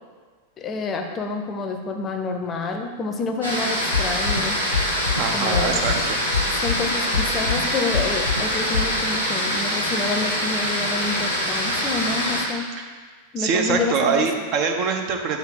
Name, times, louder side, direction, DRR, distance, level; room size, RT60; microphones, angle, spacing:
voice 1, 0.6-4.6 5.3-6.0 6.5-12.7 13.3-14.3, left 3 dB, 25° left, 4 dB, 0.6 m, -28 dB
sound 1, 3.4-12.4, equal, 80° right, 1.3 m, -24 dB
sound 2, 3.9-4.4 4.7-5.2 5.5-6.0 6.3-6.8 7.1-7.6 7.9-8.4 8.7-8.8, left 5 dB, 85° left, 0.7 m, -23 dB
voice 2, 5.2-6.2 12.8-12.9 13.4-15.4, right 5 dB, 40° right, 3 dB, 0.6 m, -23 dB
6.8 x 3.0 x 5.8 m, 1.5 s
figure-of-eight pair, 90°, 0 cm